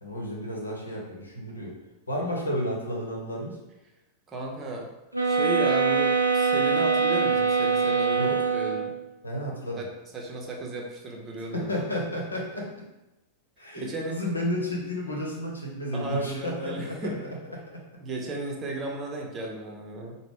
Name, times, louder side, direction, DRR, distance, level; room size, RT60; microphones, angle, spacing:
voice 1, 0.0-1.7 2.1-3.6 8.2-8.3 9.2-9.9 11.5-12.7 13.6-17.6, equal, 80° left, -2 dB, 0.9 m, -32 dB
voice 2, 4.3-4.9 5.2-8.9 9.8-9.9 10.1-11.7 13.7-14.1 15.9-17.2 18.0-20.2, right 1 dB, 25° right, 0 dB, 0.7 m, -34 dB
sound 1, 5.1-9.0, right 5 dB, 85° right, 0.5 m, -23 dB
4.8 x 2.2 x 3.6 m, 0.97 s
figure-of-eight pair, 90°, 0 cm